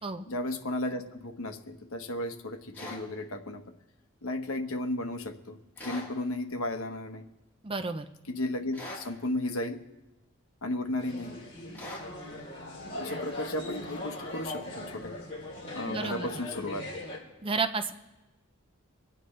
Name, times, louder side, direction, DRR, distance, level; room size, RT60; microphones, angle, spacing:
voice 1, 0.3-3.6 4.2-5.6 5.8-7.3 8.3-9.8 10.6-11.3 12.9-15.1 15.7-16.8, left 1 dB, 70° left, 5 dB, 1.2 m, -34 dB
sound 1, 2.7-3.0 5.8-6.1 8.7-9.1 11.7-12.1, left 1 dB, 10° left, 3.7 m, -40 dB
voice 2, 7.6-8.1 15.9-16.3 17.4-17.9, right 4 dB, 25° right, 7 dB, 0.6 m, -31 dB
sound 2, 11.0-17.2, left 1 dB, 30° left, 3.6 m, -40 dB
25.0 x 9.4 x 3.2 m, 1.0 s
head